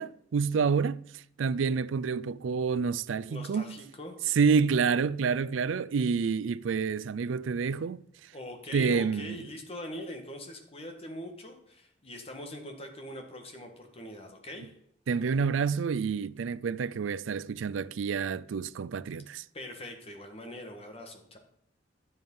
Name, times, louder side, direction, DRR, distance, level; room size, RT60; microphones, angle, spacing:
voice 1, 0.0-3.8 4.3-8.3 8.7-9.4 15.1-19.4, right 5 dB, 80° right, 0.4 m, -28 dB
voice 2, 3.3-4.2 8.3-14.7 19.5-21.4, left 1 dB, 30° left, 1.6 m, -42 dB
11.0 x 7.3 x 5.5 m
head